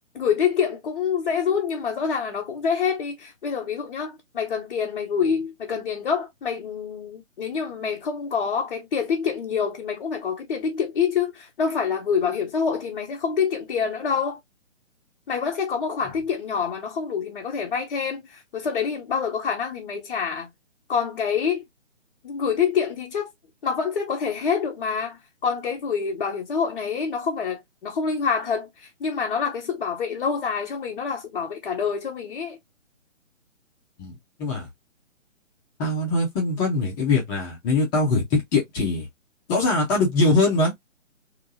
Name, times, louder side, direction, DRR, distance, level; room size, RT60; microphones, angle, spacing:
voice 1, 0.1-14.4 15.3-20.5 20.9-21.6 22.2-23.3 23.6-32.6, left 6 dB, 45° left, 0.9 m, -26 dB
voice 2, 34.0-34.7 35.8-39.1 39.5-40.7, left 3 dB, 15° left, 1.0 m, -22 dB
3.5 x 2.9 x 2.6 m
figure-of-eight pair, 145°, 39 cm